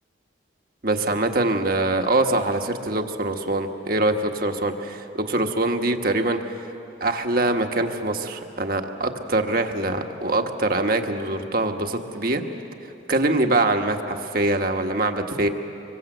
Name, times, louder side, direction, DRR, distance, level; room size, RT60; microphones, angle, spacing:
voice 1, 0.8-6.4 7.0-12.4 13.1-15.5, right 2 dB, 50° right, 5 dB, 1.4 m, -23 dB
26.0 x 23.5 x 7.9 m, 2.9 s
head